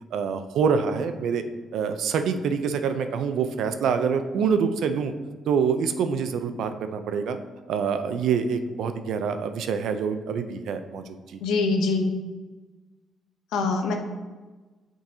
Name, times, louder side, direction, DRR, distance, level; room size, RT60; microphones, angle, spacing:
voice 1, 0.1-1.4 1.7-5.1 5.5-7.4 7.7-11.4, right 6 dB, 75° right, 8 dB, 0.5 m, -26 dB
voice 2, 11.4-12.1 13.5-13.9, left 3 dB, 90° left, 3 dB, 0.7 m, -23 dB
8.8 x 3.8 x 2.8 m, 1.3 s
cardioid pair, 90°, 0 cm